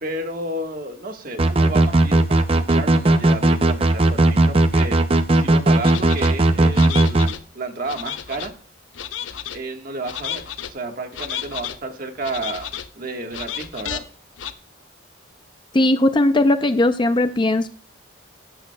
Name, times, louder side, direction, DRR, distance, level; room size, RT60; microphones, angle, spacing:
voice 1, 0.0-5.0 5.3-8.5 9.5-12.7 12.9-14.0, right 2 dB, 45° right, 5 dB, 1.4 m, -31 dB
sound 1, 1.4-7.3, right 2 dB, 30° right, 0.5 m, -16 dB
sound 2, 5.8-6.3 6.7-7.4 7.9-8.5 8.9-9.6 10.0-10.7 11.1-11.8 12.2-12.9 13.3-14.0 14.4-14.5, left 10 dB, 75° left, 0.7 m, -32 dB
voice 2, 15.7-17.7, left 1 dB, 25° left, 10 dB, 0.4 m, -18 dB
14.5 x 10.0 x 2.2 m, 0.41 s
head